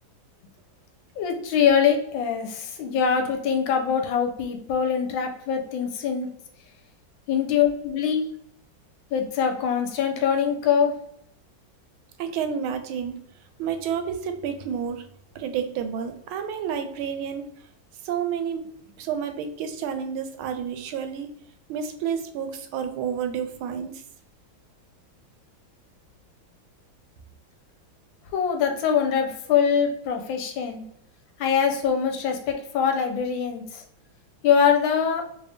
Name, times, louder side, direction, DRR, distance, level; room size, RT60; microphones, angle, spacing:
voice 1, 1.2-6.3 7.3-8.2 9.1-10.9 28.3-30.8 31.4-33.8 34.4-35.2, left 7 dB, 75° left, 4 dB, 1.3 m, -23 dB
voice 2, 12.2-13.2 13.6-15.1 15.3-17.5 18.0-18.7 19.0-21.3 21.7-24.0, right 7 dB, 90° right, 7 dB, 1.4 m, -30 dB
3.3 x 2.6 x 3.3 m, 0.72 s
omnidirectional pair, 2.2 m